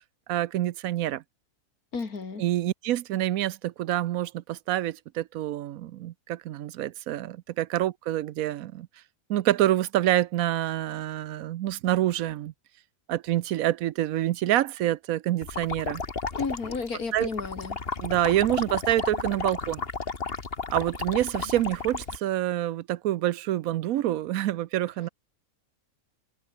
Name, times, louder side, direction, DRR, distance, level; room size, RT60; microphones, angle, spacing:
voice 1, 0.3-1.2 2.4-8.9 9.3-12.5 13.1-16.0 17.1-17.3 18.0-19.8 20.7-25.1, right 13 dB, 80° right, 1.0 m, -27 dB
voice 2, 1.9-2.4 16.3-17.8, left 4 dB, 85° left, 3.2 m, -32 dB
sound 1, 15.4-22.2, left 4 dB, 40° left, 2.0 m, -33 dB
omnidirectional pair, 1.5 m